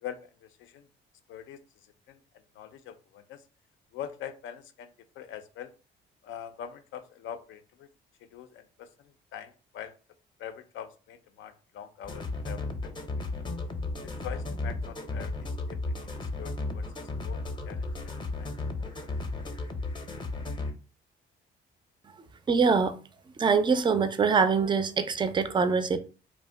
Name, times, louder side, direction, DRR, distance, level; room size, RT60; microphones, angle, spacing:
voice 1, 0.0-0.9 1.3-1.6 2.1-2.2 2.5-3.4 3.9-5.7 6.2-7.9 8.2-9.9 10.4-12.7 13.1-13.4 14.0-16.8 17.2-18.5 18.8-18.9, left 9 dB, 75° left, 0.4 m, -44 dB
sound 1, 12.0-20.7, left 2 dB, 25° left, 0.6 m, -34 dB
voice 2, 22.5-23.0 23.4-26.0, right 5 dB, 25° right, 0.3 m, -24 dB
2.6 x 2.1 x 3.3 m
cardioid pair, 90°, 20 cm